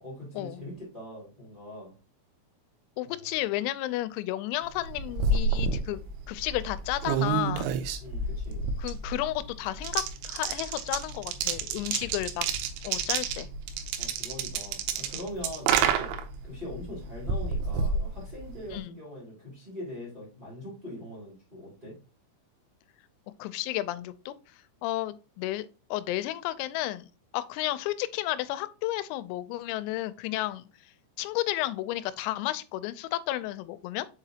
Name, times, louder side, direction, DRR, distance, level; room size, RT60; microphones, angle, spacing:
voice 1, 0.0-1.9 3.0-3.2 8.0-8.7 11.8-12.1 14.0-16.1 16.4-21.9, left 1 dB, 60° right, 0.5 m, -42 dB
voice 2, 3.0-7.7 8.8-12.5 12.8-13.5 18.7-18.9 23.4-24.3 24.8-27.1 27.3-30.7 31.2-34.1, left 15 dB, 90° left, 3.3 m, -32 dB
sound 1, 4.7-18.8, right 5 dB, 85° right, 3.4 m, -30 dB
7.2 x 4.9 x 2.8 m
omnidirectional pair, 6.0 m